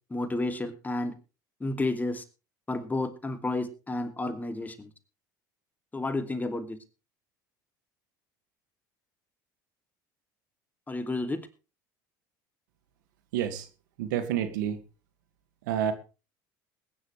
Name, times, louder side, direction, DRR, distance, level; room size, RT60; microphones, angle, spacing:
voice 1, 0.1-1.1 1.6-2.2 2.7-4.9 5.9-6.8 10.9-11.5, left 2 dB, 15° left, 8 dB, 2.5 m, -31 dB
voice 2, 13.3-13.7 14.0-14.8 15.7-15.9, right 10 dB, 80° right, 9 dB, 2.1 m, -28 dB
21.0 x 10.5 x 3.3 m, 0.32 s
hypercardioid pair, 80°, 10 cm